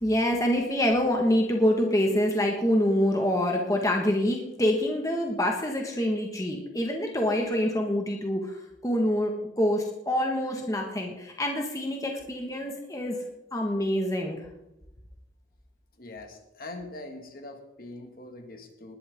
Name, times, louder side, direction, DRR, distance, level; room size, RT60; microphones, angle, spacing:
voice 1, 0.0-13.1 13.5-14.4, left 1 dB, 20° left, 1 dB, 1.5 m, -26 dB
voice 2, 16.0-19.0, left 2 dB, 50° left, 4 dB, 1.9 m, -42 dB
19.5 x 11.5 x 3.6 m, 0.87 s
head